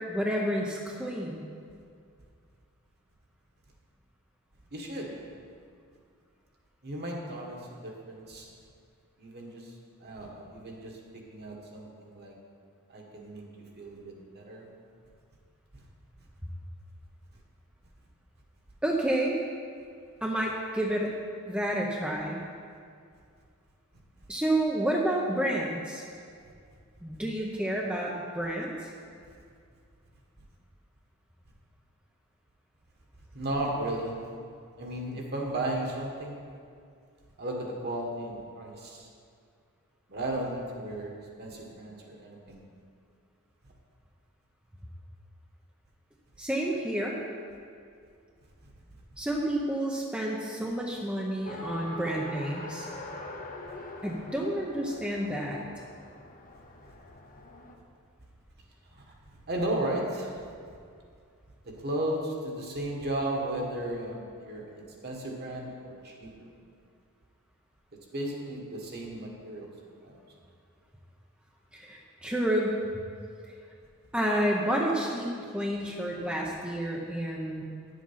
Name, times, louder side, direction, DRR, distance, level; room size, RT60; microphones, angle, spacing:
voice 1, 0.0-1.4 13.2-13.4 18.8-19.4 20.2-21.1 21.5-22.4 24.3-26.0 27.0-28.7 46.4-47.2 49.2-52.9 54.0-55.6 71.7-72.8 74.1-77.6, right 1 dB, 5° right, -2 dB, 0.7 m, -30 dB
voice 2, 4.7-5.2 6.8-8.5 9.2-9.7 10.0-12.3 12.9-14.7 15.7-15.8 33.3-34.3 34.8-36.4 37.4-39.1 40.1-41.1 41.4-42.6 59.0-59.1 59.5-60.3 61.6-66.5 68.1-69.7 70.0-70.2, right 1 dB, 45° right, -1 dB, 1.7 m, -35 dB
Race car auto racing, 51.4-57.7, left 2 dB, 40° left, 0.9 m, -43 dB
10.0 x 7.5 x 5.7 m, 2.3 s
head